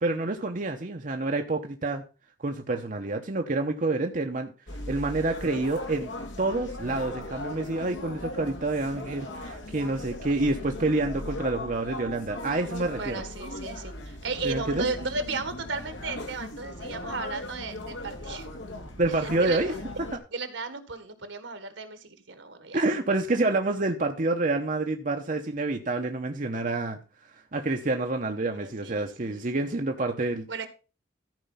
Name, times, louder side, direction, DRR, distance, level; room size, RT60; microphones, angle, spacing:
voice 1, 0.0-2.0 2.4-4.5 4.9-6.1 6.4-13.2 14.4-14.9 19.0-19.7 22.7-27.0 27.5-30.5, right 2 dB, 45° right, 4 dB, 0.8 m, -28 dB
sound 1, 4.7-20.2, left 1 dB, 80° left, 2.1 m, -38 dB
voice 2, 13.0-13.9 14.2-18.5 19.1-19.6 19.9-20.0 20.3-22.8 28.5-29.7 30.5-30.7, right 4 dB, 75° right, 10 dB, 1.7 m, -35 dB
13.5 x 5.1 x 5.6 m, 0.34 s
head